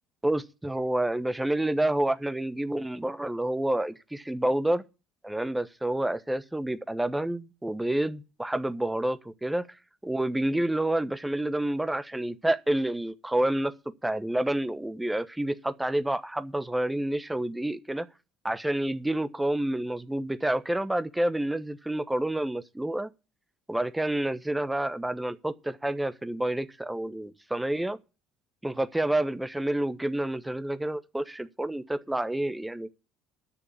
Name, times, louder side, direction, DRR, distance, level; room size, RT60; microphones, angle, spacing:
voice 1, 0.2-4.8 5.2-9.7 10.0-13.7 14.0-18.1 18.4-23.1 23.7-28.0 28.6-32.9, right 1 dB, 10° right, 1.1 m, -29 dB
10.0 x 7.0 x 8.6 m
hypercardioid pair, 70°, 0 cm